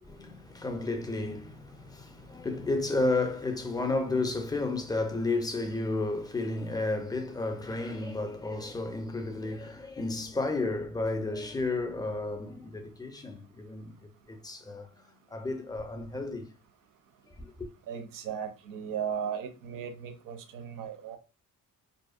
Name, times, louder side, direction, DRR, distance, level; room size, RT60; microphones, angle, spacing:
voice 1, 0.0-14.0 14.3-14.9 15.3-16.5 17.3-17.7, left 2 dB, 10° left, 0.4 m, -32 dB
voice 2, 17.9-21.2, right 7 dB, 75° right, 0.6 m, -36 dB
2.5 x 2.0 x 2.4 m
cardioid pair, 95°, 33 cm